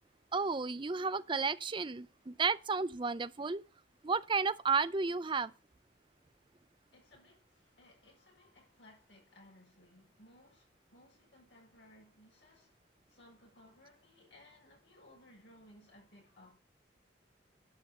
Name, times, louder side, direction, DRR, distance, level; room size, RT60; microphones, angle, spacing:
voice 1, 0.3-3.6 4.0-5.5, right 4 dB, 25° right, 0.5 m, -32 dB
voice 2, 6.9-12.7 13.1-16.6, left 1 dB, 75° left, 7.1 m, -61 dB
11.5 x 6.1 x 6.7 m
head